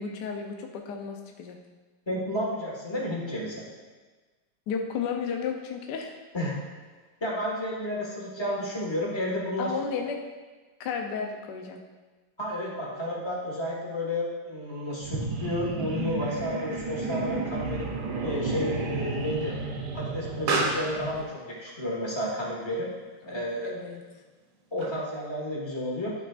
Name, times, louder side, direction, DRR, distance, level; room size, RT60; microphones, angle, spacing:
voice 1, 0.0-1.6 4.7-6.2 9.6-10.2 10.8-11.8 23.2-24.0, left 6 dB, 70° left, 3 dB, 1.1 m, -33 dB
voice 2, 2.1-3.6 6.3-6.6 7.2-9.7 12.4-17.9 18.2-19.5 19.9-22.9 23.3-23.8 24.7-26.1, left 1 dB, 15° left, -4 dB, 1.4 m, -31 dB
sound 1, 15.0-21.2, right 3 dB, 60° right, 1.2 m, -33 dB
Explosion, 16.3-25.3, right 3 dB, 85° right, 1.9 m, -37 dB
12.5 x 4.6 x 2.4 m, 1.3 s
omnidirectional pair, 2.2 m